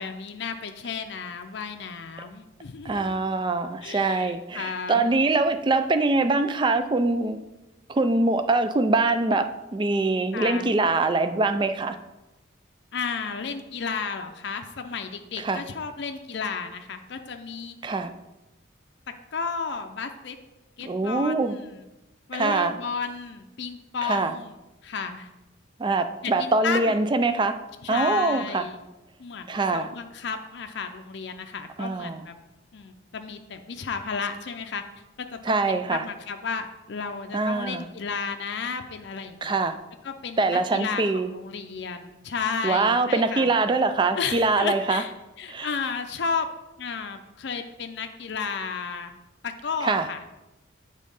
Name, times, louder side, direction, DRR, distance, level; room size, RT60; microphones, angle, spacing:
voice 1, 0.0-3.1 3.8-5.1 10.3-10.7 12.9-17.8 19.3-20.4 20.8-21.8 22.3-24.5 24.8-25.3 26.2-27.0 27.8-28.8 29.2-32.3 32.7-34.8 35.2-39.5 40.0-43.5 44.2-45.1 45.4-46.5 46.8-49.1 49.4-50.2, left 5 dB, 60° left, 6 dB, 0.5 m, -33 dB
voice 2, 2.8-7.4 7.9-12.0 15.4-15.6 17.8-18.1 20.8-21.6 22.3-22.7 24.0-24.3 25.8-27.6 27.9-28.7 29.5-29.9 31.8-32.3 35.4-36.0 37.3-37.8 39.4-39.8 40.4-41.3 42.6-45.0 45.5-45.7 49.8-50.1, right 3 dB, 25° right, 9 dB, 0.3 m, -23 dB
7.3 x 3.7 x 5.4 m, 1.0 s
head